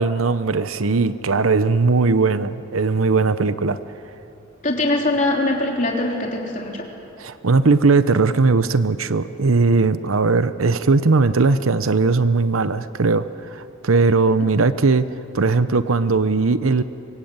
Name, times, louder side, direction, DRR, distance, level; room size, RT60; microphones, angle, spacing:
voice 1, 0.0-3.8 7.2-13.3 13.5-15.1 15.3-16.8, right 3 dB, 80° right, 13 dB, 0.8 m, -18 dB
voice 2, 4.6-6.9, left 2 dB, 35° left, -1 dB, 3.8 m, -22 dB
25.0 x 23.0 x 8.9 m, 2.8 s
head